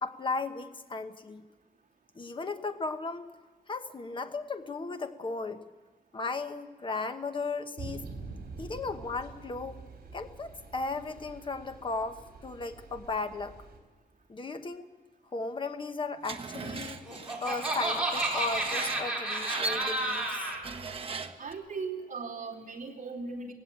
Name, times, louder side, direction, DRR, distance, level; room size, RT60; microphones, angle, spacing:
voice 1, 0.0-1.4 2.1-3.3 3.7-5.6 6.1-8.1 8.6-9.8 10.1-13.5 14.3-14.9 15.3-17.0 17.4-20.5, left 3 dB, 30° left, 8 dB, 1.0 m, -36 dB
sound 1, 7.8-13.8, right 4 dB, 65° right, 3.9 m, -46 dB
Screech, 16.2-21.5, right 4 dB, 35° right, 1.2 m, -38 dB
Laughter, 16.8-20.6, right 1 dB, 5° right, 4.0 m, -31 dB
voice 2, 21.4-23.5, right 4 dB, 50° right, -1 dB, 2.8 m, -38 dB
19.0 x 16.5 x 9.1 m, 1.2 s
wide cardioid pair, 180°, 17 cm